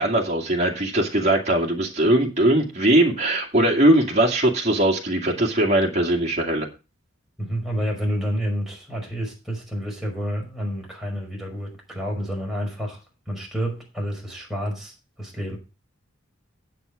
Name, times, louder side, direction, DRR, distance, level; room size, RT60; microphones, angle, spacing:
voice 1, 0.0-6.7, right 1 dB, 35° right, 2.3 m, -20 dB
voice 2, 7.4-15.6, equal, ahead, 5.4 m, -29 dB
9.7 x 8.2 x 4.9 m
head